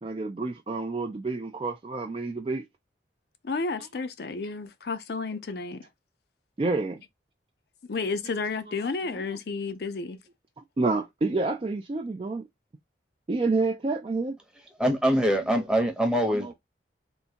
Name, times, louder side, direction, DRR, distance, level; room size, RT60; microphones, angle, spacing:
voice 1, 0.0-2.7 6.6-7.0 8.7-8.8 9.1-9.6 10.6-12.4 13.3-14.4 15.3-16.5, right 3 dB, 30° right, 0.3 m, -29 dB
voice 2, 3.4-5.8 7.9-10.2, left 4 dB, 60° left, 0.5 m, -31 dB
voice 3, 14.8-16.5, equal, 5° right, 0.8 m, -24 dB
3.5 x 2.7 x 2.8 m
head